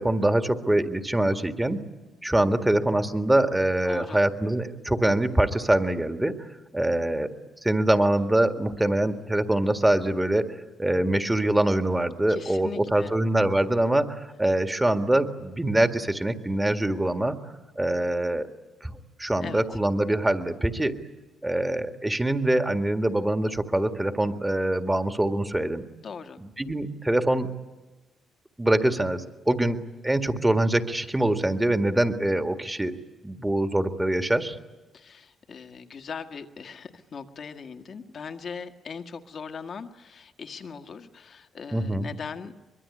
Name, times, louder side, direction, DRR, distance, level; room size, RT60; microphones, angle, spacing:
voice 1, 0.0-1.8 2.2-6.5 6.7-7.3 7.6-17.4 17.8-18.5 18.8-21.0 21.4-25.8 26.4-27.5 28.6-29.8 30.0-32.9 33.2-34.6 41.7-42.1, right 1 dB, 10° right, 7 dB, 1.9 m, -24 dB
voice 2, 3.8-4.2 12.3-13.1 19.4-19.6 26.0-26.4 34.9-42.6, left 6 dB, 50° left, 6 dB, 1.7 m, -39 dB
24.0 x 22.0 x 9.8 m, 1.1 s
cardioid pair, 90°, 0 cm